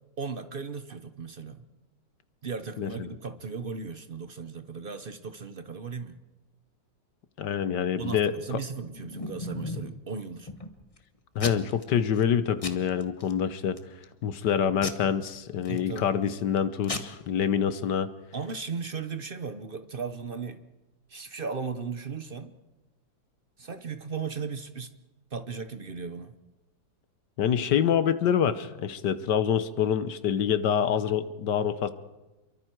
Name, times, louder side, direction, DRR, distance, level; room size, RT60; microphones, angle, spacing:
voice 1, 0.2-1.6 2.4-6.2 8.0-10.5 15.7-16.1 18.3-20.6 21.1-22.6 23.6-24.9 25.3-26.3, right 5 dB, 50° right, 10 dB, 0.6 m, -36 dB
voice 2, 7.4-8.6 11.3-13.8 14.2-18.1 27.4-31.9, left 8 dB, 65° left, 13 dB, 1.5 m, -26 dB
Packing tape duct tape / Tearing, 8.6-10.0 10.5-11.0 11.4-11.8 12.2-12.3 12.6-13.3 13.8-14.1 14.8-16.1 16.6-16.7 16.8-17.0, left 3 dB, 20° left, 1.0 m, -37 dB
28.5 x 23.5 x 4.6 m, 1.1 s
omnidirectional pair, 2.1 m